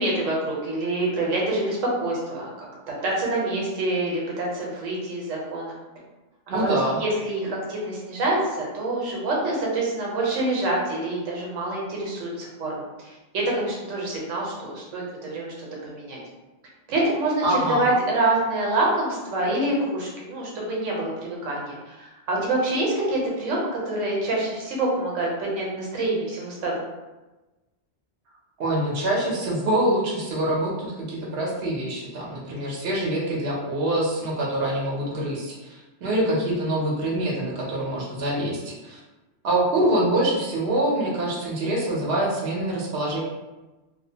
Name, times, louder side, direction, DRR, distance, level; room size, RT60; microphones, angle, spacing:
voice 1, 0.0-2.7 3.0-5.8 6.5-6.7 7.0-13.1 13.3-15.5 15.8-16.2 16.9-26.7, right 2 dB, 90° right, -3 dB, 1.1 m, -26 dB
voice 2, 6.5-7.0 17.4-17.9 28.6-39.0 39.4-43.2, right 1 dB, 60° right, -4 dB, 0.8 m, -25 dB
2.6 x 2.0 x 2.7 m, 1.1 s
omnidirectional pair, 1.3 m